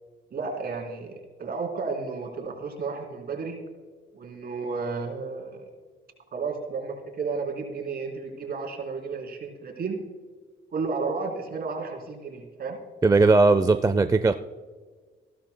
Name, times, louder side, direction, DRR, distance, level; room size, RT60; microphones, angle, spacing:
voice 1, 0.3-3.6 4.1-5.7 6.3-10.0 10.7-12.8, right 4 dB, 50° right, 1 dB, 3.6 m, -32 dB
voice 2, 13.0-14.3, right 3 dB, 15° right, 10 dB, 0.5 m, -18 dB
15.5 x 12.5 x 2.2 m, 1.5 s
cardioid pair, 90°, 20 cm